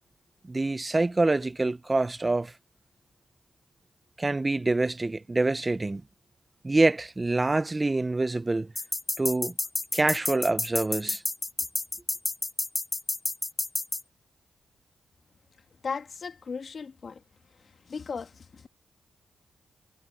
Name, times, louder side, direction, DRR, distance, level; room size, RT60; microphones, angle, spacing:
voice 1, 0.5-2.5 4.2-6.0 6.6-8.7 9.2-9.5 9.9-11.2, right 2 dB, 30° right, 0.9 m, -26 dB
sound 1, 8.8-14.0, left 2 dB, 25° left, 2.3 m, -29 dB
voice 2, 15.8-17.2 17.9-18.7, left 5 dB, 60° left, 1.8 m, -36 dB
cardioid pair, 50°, 0 cm